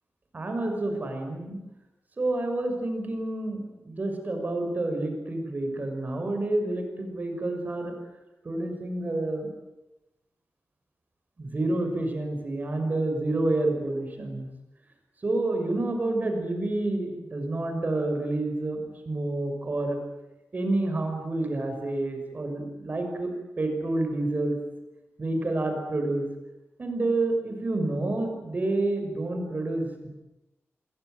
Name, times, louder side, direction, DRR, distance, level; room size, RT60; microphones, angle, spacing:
voice 1, 0.3-1.6 2.2-7.9 8.4-9.5 11.4-14.5 15.2-20.0 20.5-24.6 25.2-26.3 26.8-30.1, right 2 dB, 35° right, 4 dB, 6.3 m, -29 dB
27.5 x 21.5 x 9.4 m, 0.96 s
wide cardioid pair, 180°, 5 cm